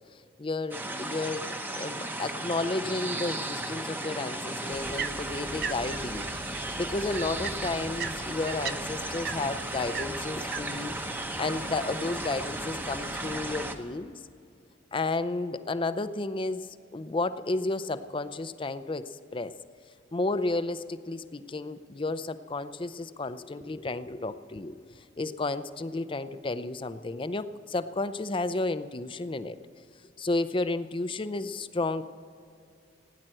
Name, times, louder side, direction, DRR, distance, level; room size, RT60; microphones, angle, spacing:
voice 1, 0.4-10.9 11.4-14.1 14.9-19.5 20.1-29.6 30.2-32.0, left 2 dB, 25° left, 13 dB, 0.5 m, -32 dB
sound 1, 0.7-13.8, right 1 dB, 10° right, 0.8 m, -35 dB
sound 2, 4.5-13.4, right 7 dB, 55° right, 0.6 m, -41 dB
sound 3, 4.7-13.8, equal, 70° right, 3.4 m, -45 dB
16.5 x 10.0 x 7.7 m, 2.4 s
head